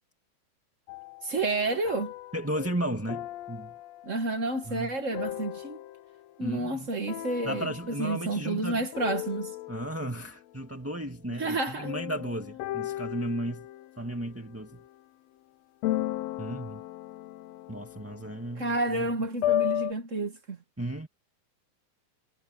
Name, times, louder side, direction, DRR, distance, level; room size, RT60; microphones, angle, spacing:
sound 1, 0.9-6.3 7.1-8.7 8.9-10.2 11.8-14.9 15.8-19.9, left 14 dB, 70° left, 1.7 m, -36 dB
voice 1, 1.2-2.1 4.0-5.8 6.4-7.7 8.0-9.5 11.4-11.9 18.6-20.6, right 2 dB, 35° right, 1.3 m, -30 dB
voice 2, 2.3-3.8 4.7-4.9 6.4-6.9 7.4-8.9 9.7-13.7 14.0-14.8 16.4-16.8 17.7-19.1 20.8-21.1, right 1 dB, 5° right, 1.1 m, -34 dB
omnidirectional pair, 3.5 m